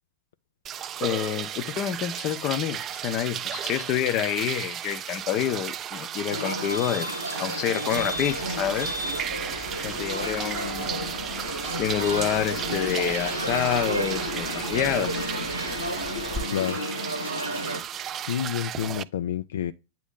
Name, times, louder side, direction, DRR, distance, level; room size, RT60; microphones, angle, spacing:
sound 1, 0.6-19.0, right 10 dB, 30° right, 0.4 m, -34 dB
voice 1, 1.0-7.1 7.4-8.9 9.7-10.9 11.8-15.2, left 11 dB, 40° left, 0.7 m, -28 dB
sound 2, 6.3-17.8, equal, 85° right, 1.0 m, -32 dB
sound 3, 8.0-16.4, equal, 5° right, 0.8 m, -42 dB
voice 2, 18.2-19.7, left 10 dB, 60° left, 0.3 m, -29 dB
9.0 x 3.0 x 3.7 m
figure-of-eight pair, 90°, 0 cm